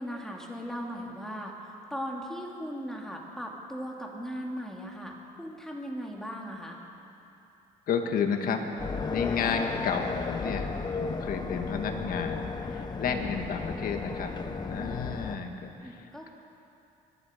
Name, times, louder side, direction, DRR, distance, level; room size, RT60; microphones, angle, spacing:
voice 1, 0.0-1.5 1.9-6.8 14.7-15.0 15.8-16.3, equal, 5° left, -1 dB, 2.5 m, -38 dB
voice 2, 7.9-14.3 14.7-16.3, left 6 dB, 60° left, 4 dB, 1.7 m, -32 dB
sound 1, 8.8-15.4, left 4 dB, 25° left, 0.8 m, -34 dB
24.5 x 11.5 x 5.1 m, 2.8 s
cardioid pair, 110°, 17 cm